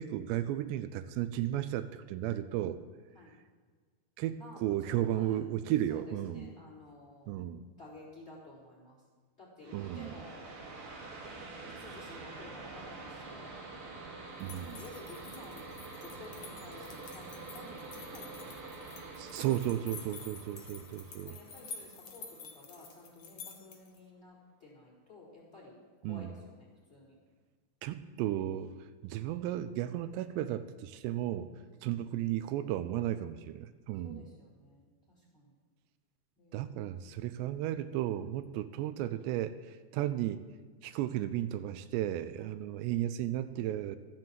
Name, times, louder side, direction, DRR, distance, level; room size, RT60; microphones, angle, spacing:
voice 1, 0.0-2.8 4.2-6.5 7.3-7.7 9.7-10.1 14.4-14.8 19.2-21.4 26.0-26.3 27.8-28.7 29.0-31.5 31.8-34.2 36.5-40.4 40.8-44.0, right 12 dB, 85° right, 11 dB, 2.7 m, -34 dB
voice 2, 4.4-5.4 5.9-7.3 7.8-9.0 9.4-10.4 11.2-13.5 14.6-15.7 16.0-18.7 21.2-27.2 31.6-32.1 34.0-35.5 36.4-37.0 42.4-42.6, left 2 dB, 15° left, -3 dB, 3.8 m, -53 dB
sound 1, 9.6-23.0, right 3 dB, 40° right, 2.3 m, -47 dB
sound 2, 14.4-24.0, left 6 dB, 65° left, 1.5 m, -49 dB
14.0 x 7.7 x 7.4 m, 1.5 s
omnidirectional pair, 5.0 m